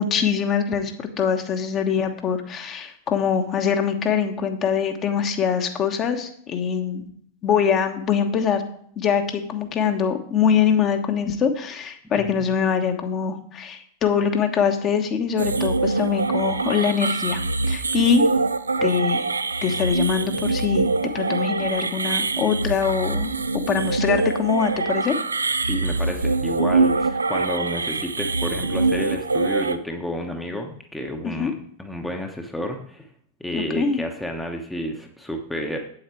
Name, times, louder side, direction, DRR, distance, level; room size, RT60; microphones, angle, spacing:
voice 1, 0.0-7.0 7.4-8.6 9.0-17.4 17.7-18.3 18.8-19.2 19.6-25.2 31.2-31.5 33.5-34.0, left 7 dB, 30° left, 5 dB, 1.2 m, -23 dB
sound 1, 15.4-29.8, right 3 dB, 80° right, 0.4 m, -24 dB
voice 2, 25.6-31.5 31.8-33.1 33.4-35.8, equal, 5° left, 3 dB, 1.0 m, -30 dB
8.5 x 7.9 x 4.6 m, 0.62 s
figure-of-eight pair, 90°, 0 cm